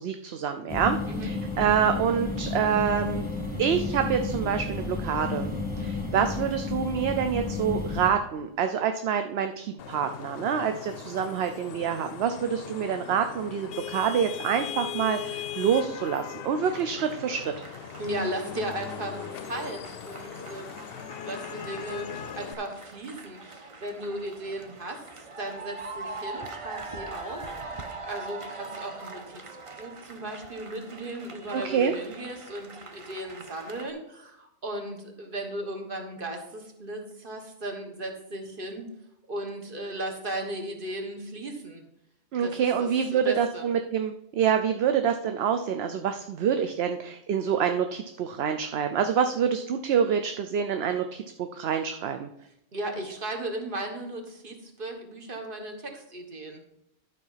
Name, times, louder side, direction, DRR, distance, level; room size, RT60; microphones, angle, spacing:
voice 1, 0.0-1.0 1.2-3.2 3.6-5.5 5.8-17.4 31.5-31.9 42.3-52.3, right 7 dB, 65° right, 7 dB, 0.8 m, -26 dB
sound 1, 0.7-8.1, left 3 dB, 10° right, 1.9 m, -32 dB
Vehicle horn car horn honking / Traffic noise roadway noise, 9.8-22.5, left 9 dB, 65° left, 0.7 m, -39 dB
sound 2, 16.7-33.9, right 3 dB, 30° right, 0.7 m, -43 dB
voice 2, 18.0-20.7 21.2-25.0 25.4-27.4 28.0-29.4 29.8-38.9 39.3-41.8 42.4-43.6 52.7-56.6, right 1 dB, 45° right, 4 dB, 1.6 m, -36 dB
11.5 x 4.6 x 5.6 m, 0.81 s
omnidirectional pair, 1.2 m